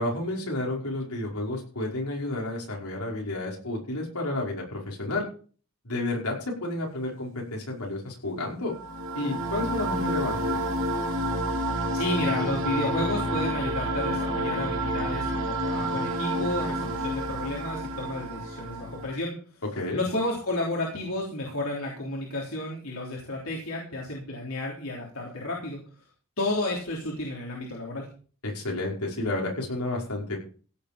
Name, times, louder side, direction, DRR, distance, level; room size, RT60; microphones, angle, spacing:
voice 1, 0.0-5.3 5.8-8.7 9.1-10.6 19.8-20.0 28.4-30.4, left 2 dB, 90° left, -1 dB, 5.3 m, -31 dB
sound 1, 8.7-19.1, right 1 dB, 65° right, 2.5 m, -29 dB
voice 2, 11.9-19.6 19.9-25.8 26.4-28.1, left 2 dB, 75° left, -2 dB, 3.5 m, -32 dB
16.5 x 7.6 x 5.2 m, 0.40 s
head